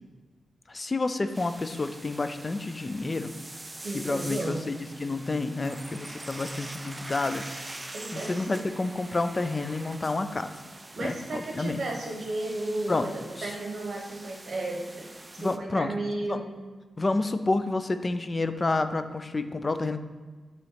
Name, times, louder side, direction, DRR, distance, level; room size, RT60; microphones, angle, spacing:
voice 1, 0.7-3.3 4.0-7.4 8.1-10.5 11.0-11.8 12.9-13.1 13.4-13.5 15.4-15.9 16.3-16.4 17.0-20.0, left 3 dB, 40° left, 10 dB, 0.4 m, -29 dB
sound 1, 1.3-15.6, right 2 dB, 25° right, 0.4 m, -44 dB
voice 2, 3.8-4.6 7.9-8.6 10.9-16.6, right 2 dB, 70° right, 0 dB, 0.8 m, -34 dB
5.6 x 3.1 x 5.6 m, 1.4 s
cardioid pair, 50°, 0 cm